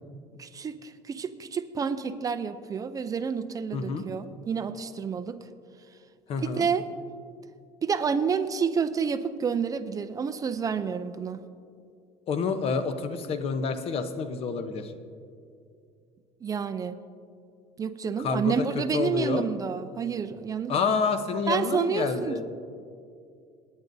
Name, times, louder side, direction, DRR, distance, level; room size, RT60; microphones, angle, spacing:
voice 1, 0.4-5.4 6.4-6.9 7.8-11.4 16.4-17.0 17.8-20.8 21.5-22.5, right 6 dB, 25° right, 11 dB, 0.5 m, -29 dB
voice 2, 3.7-4.1 6.3-6.7 12.3-14.9 18.2-18.7 18.9-19.5 20.7-22.5, left 5 dB, 45° left, 9 dB, 0.8 m, -28 dB
27.5 x 9.9 x 2.7 m, 2.4 s
cardioid pair, 150°, 14 cm